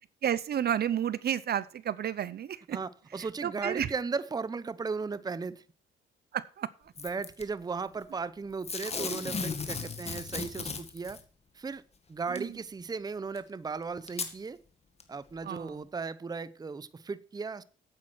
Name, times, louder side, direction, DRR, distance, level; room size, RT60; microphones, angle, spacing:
voice 1, 0.2-2.8 3.4-3.9 6.3-6.7 12.4-12.5 15.4-15.7, right 9 dB, 55° right, 0.7 m, -31 dB
voice 2, 2.7-5.6 7.0-11.2 11.5-11.8 12.1-14.6 15.1-17.6, right 4 dB, 20° right, 0.6 m, -36 dB
Packing tape duct tape / Tearing, 7.0-7.4 8.6-11.2 12.4-12.5 13.4-13.5 14.1-14.3 15.0-15.1, left 4 dB, 30° left, 1.8 m, -36 dB
8.7 x 8.6 x 6.1 m
cardioid pair, 90°, 20 cm